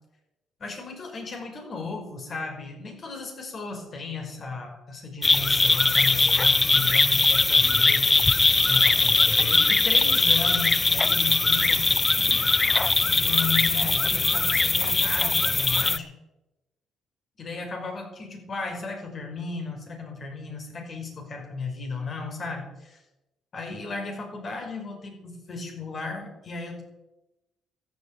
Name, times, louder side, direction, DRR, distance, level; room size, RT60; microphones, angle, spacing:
voice 1, 0.6-8.3 8.7-11.9 12.2-12.7 13.1-16.1 17.4-23.0 23.5-26.8, left 4 dB, 45° left, 2 dB, 5.5 m, -35 dB
sound 1, 5.2-16.0, left 3 dB, 25° left, 0.6 m, -21 dB
13.5 x 9.0 x 9.1 m, 1.0 s
cardioid pair, 90°, 0 cm